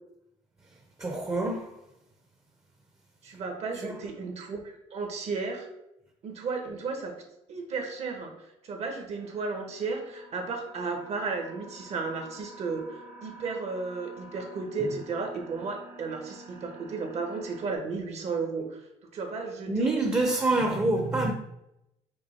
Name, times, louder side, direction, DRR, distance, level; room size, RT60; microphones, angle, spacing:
voice 1, 0.7-1.8 3.8-4.0 14.8-14.9 19.7-21.3, right 2 dB, 20° right, 0.7 m, -27 dB
voice 2, 3.2-5.7 6.2-7.1 7.5-8.3 8.6-18.9 19.1-19.9 20.6-20.7, right 4 dB, 55° right, 1.1 m, -34 dB
sound 1, 9.1-17.8, right 1 dB, 85° right, 1.5 m, -50 dB
5.3 x 2.3 x 4.3 m
supercardioid pair, 85°, 13 cm